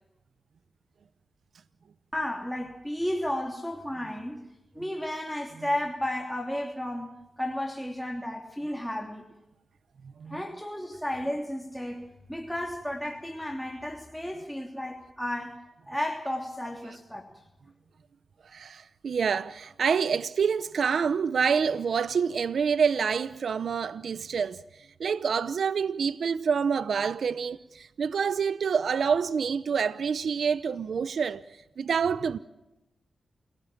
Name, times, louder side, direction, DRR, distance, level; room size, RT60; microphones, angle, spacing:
voice 1, 2.1-4.4 4.8-9.2 10.3-17.3, left 1 dB, ahead, 3.0 m, -33 dB
voice 2, 18.5-24.6 25.0-31.4 31.8-32.4, right 6 dB, 75° right, 0.8 m, -27 dB
29.0 x 17.5 x 7.3 m
cardioid pair, 55°, 0 cm